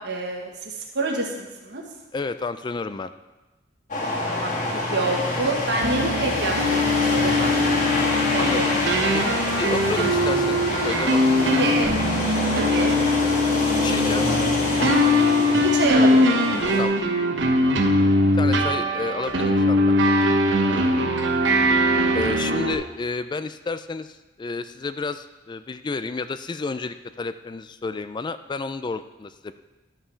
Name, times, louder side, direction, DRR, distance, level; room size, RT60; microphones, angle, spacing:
voice 1, 0.0-1.8 4.2-4.6 4.9-7.5 8.3-8.9 11.4-12.0 12.5-13.0 15.6-16.3, right 2 dB, 65° right, 0 dB, 1.4 m, -27 dB
voice 2, 2.1-3.1 8.4-8.8 9.1-9.2 9.6-11.8 13.8-14.6 16.8-17.0 18.4-20.1 21.0-21.1 22.1-29.5, left 3 dB, 25° left, 11 dB, 0.3 m, -31 dB
sound 1, 3.9-16.8, left 1 dB, 45° left, 2.1 m, -26 dB
sound 2, 5.8-22.7, left 1 dB, 85° right, 1.0 m, -21 dB
11.0 x 5.7 x 5.6 m, 1.1 s
head